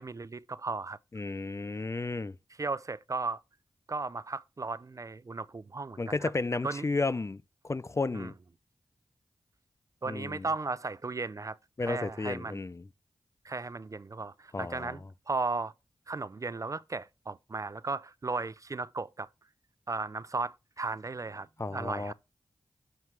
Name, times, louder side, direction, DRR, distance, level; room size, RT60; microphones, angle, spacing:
voice 1, 0.0-1.0 2.6-3.4 3.9-6.3 6.6-6.9 8.1-8.3 10.0-12.6 13.4-15.7 16.1-19.3 19.9-22.1, right 3 dB, 35° right, 0.4 m, -36 dB
voice 2, 1.1-2.4 6.0-8.3 10.0-10.5 11.8-12.8 14.5-15.0 21.6-22.1, left 3 dB, 30° left, 0.4 m, -33 dB
7.3 x 3.1 x 4.6 m
cardioid pair, 45°, 9 cm